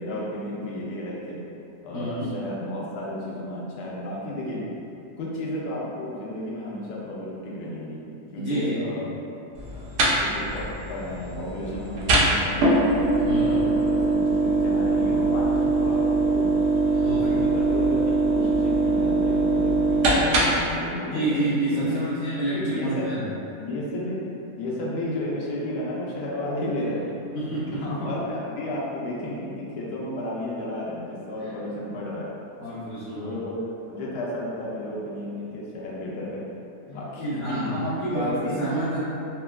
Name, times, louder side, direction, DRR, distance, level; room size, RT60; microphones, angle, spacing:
voice 1, 0.0-1.4 1.8-4.6 5.2-8.0 8.3-9.1 9.7-9.8 10.2-12.9 13.4-16.6 17.0-22.1 22.5-23.2 23.6-24.2 24.6-27.2 27.6-32.3 33.1-33.6 33.8-36.4 36.9-37.7 38.1-38.6, left 1 dB, 85° left, -5 dB, 1.2 m, -32 dB
voice 2, 1.9-2.3 8.3-9.0 13.2-13.6 16.9-17.4 21.1-23.2 27.3-27.8 31.4-31.5 32.6-33.4 37.1-39.0, right 2 dB, 60° left, -10 dB, 0.8 m, -28 dB
sound 1, 9.6-20.7, right 2 dB, 80° right, 1.1 m, -22 dB
3.8 x 2.2 x 2.2 m, 2.7 s
omnidirectional pair, 1.8 m